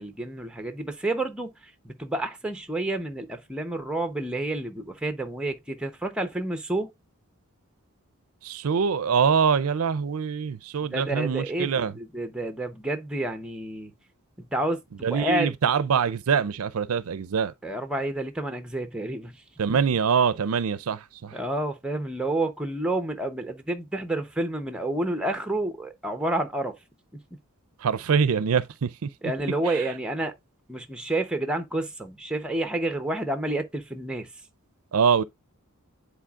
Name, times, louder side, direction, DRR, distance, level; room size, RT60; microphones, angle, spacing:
voice 1, 0.0-6.9 10.9-13.9 14.4-15.5 17.6-19.4 21.3-26.7 29.2-30.3 30.7-34.3, right 1 dB, 5° right, 0.8 m, -29 dB
voice 2, 8.4-11.9 15.0-17.5 19.6-21.4 27.8-29.1 29.7-29.8 34.9-35.2, right 6 dB, 75° right, 0.5 m, -24 dB
10.0 x 4.1 x 2.4 m
head